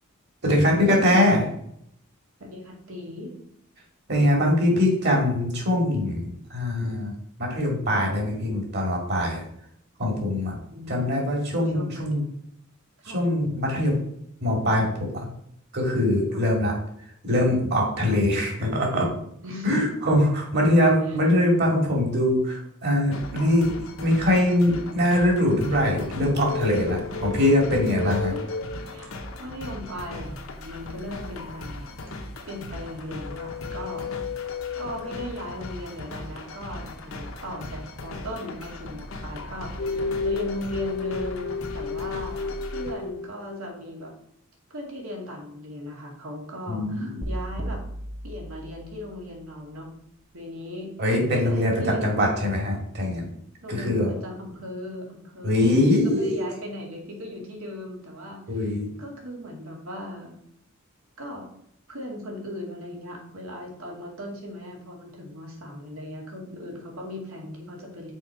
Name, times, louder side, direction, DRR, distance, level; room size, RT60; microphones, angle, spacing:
voice 1, 0.4-1.5 4.1-7.1 7.4-9.4 10.0-10.6 10.9-12.2 13.1-14.0 14.4-15.3 15.7-16.7 17.2-19.2 19.6-23.7 24.0-28.3 46.7-47.2 51.0-53.3 53.7-54.1 55.4-56.4 58.5-58.9, left 1 dB, 55° right, -1 dB, 2.4 m, -22 dB
voice 2, 2.4-3.3 10.7-11.4 11.7-12.0 13.0-13.2 16.3-16.4 18.0-18.2 19.4-19.9 21.0-21.2 26.9-27.5 28.0-28.4 28.8-31.9 32.5-34.1 34.8-44.1 44.7-47.8 48.2-49.9 50.3-50.9 51.4-52.3 53.6-60.4 61.2-61.5 61.9-68.1, left 1 dB, 85° right, -1 dB, 2.3 m, -38 dB
sound 1, 23.1-42.9, left 2 dB, 80° left, 1.0 m, -39 dB
sound 2, 26.4-29.6 33.1-35.7 39.8-43.6, left 4 dB, 55° left, 0.5 m, -32 dB
sound 3, 47.2-49.4, right 1 dB, ahead, 0.6 m, -35 dB
6.2 x 4.8 x 4.8 m, 0.71 s
head